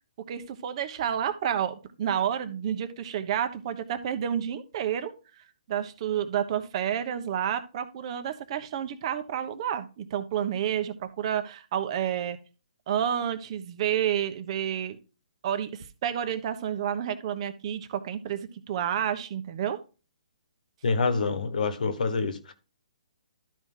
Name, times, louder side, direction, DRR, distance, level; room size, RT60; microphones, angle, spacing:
voice 1, 0.3-5.1 5.7-12.4 12.9-15.0 15.4-19.8, right 9 dB, 40° right, 1.1 m, -30 dB
voice 2, 20.8-22.5, left 4 dB, 70° left, 1.5 m, -26 dB
12.5 x 4.7 x 3.8 m
hypercardioid pair, 145°, 4 cm